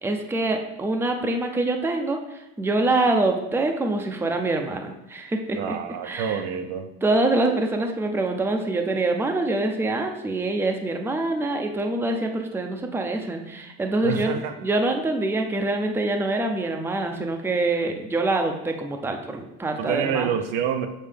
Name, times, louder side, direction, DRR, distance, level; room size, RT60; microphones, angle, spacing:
voice 1, 0.0-5.8 6.0-6.4 7.0-20.3, right 2 dB, 5° right, 4 dB, 0.6 m, -25 dB
voice 2, 5.5-6.9 14.0-14.5 19.8-20.9, right 8 dB, 75° right, 7 dB, 0.8 m, -27 dB
7.5 x 4.3 x 3.4 m, 0.90 s
supercardioid pair, 115°, 33 cm